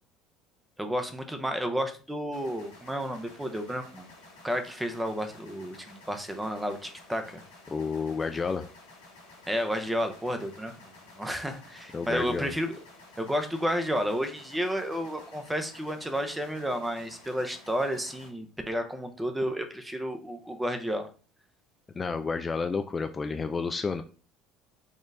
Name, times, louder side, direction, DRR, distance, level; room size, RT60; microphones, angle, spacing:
voice 1, 0.8-4.1 4.4-7.4 9.5-12.8 13.2-21.1, equal, 10° right, 7 dB, 0.7 m, -31 dB
sound 1, 2.3-18.3, left 2 dB, 80° left, 1.5 m, -52 dB
voice 2, 7.7-8.6 11.9-12.5 22.0-24.0, left 4 dB, 25° left, 7 dB, 0.4 m, -30 dB
4.3 x 2.4 x 3.3 m, 0.37 s
hypercardioid pair, 70°, 0 cm